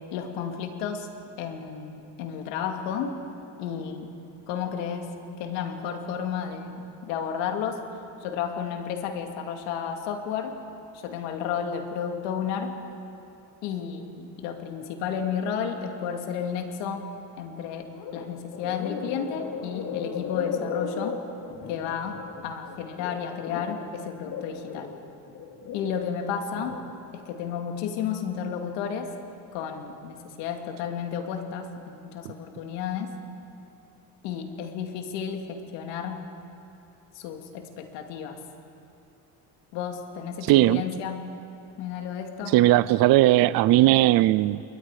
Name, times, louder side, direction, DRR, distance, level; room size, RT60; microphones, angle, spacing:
voice 1, 0.1-1.1 1.4-3.2 3.6-4.1 4.5-5.1 5.4-6.7 7.0-7.8 8.2-10.6 11.0-12.8 13.6-17.1 17.4-21.2 21.7-24.9 25.7-26.8 27.1-29.1 29.5-33.1 34.2-36.2 37.2-38.4 39.7-41.2 41.8-42.5, left 7 dB, 90° left, 4 dB, 2.4 m, -32 dB
sound 1, 17.9-18.2 18.5-23.8 24.2-26.0 26.4-26.8, left 6 dB, 55° left, 3.0 m, -35 dB
voice 2, 40.4-40.8 42.5-44.6, right 15 dB, 55° right, 17 dB, 0.5 m, -18 dB
28.0 x 22.5 x 4.9 m, 2.8 s
cardioid pair, 115°, 43 cm